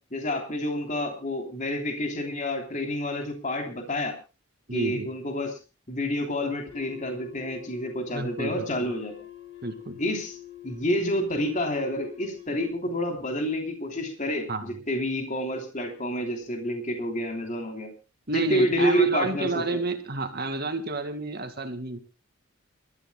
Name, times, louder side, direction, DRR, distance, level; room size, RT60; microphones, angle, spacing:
voice 1, 0.1-4.1 4.7-5.6 5.9-9.1 10.0-10.4 10.6-17.9 18.3-19.8, equal, 35° left, 4 dB, 3.3 m, -28 dB
voice 2, 4.7-5.1 8.1-8.9 9.6-10.0 14.5-14.7 18.3-22.0, right 3 dB, 45° right, 7 dB, 2.2 m, -30 dB
sound 1, 6.7-12.7, left 12 dB, 55° left, 2.3 m, -45 dB
29.0 x 14.0 x 2.3 m, 0.31 s
head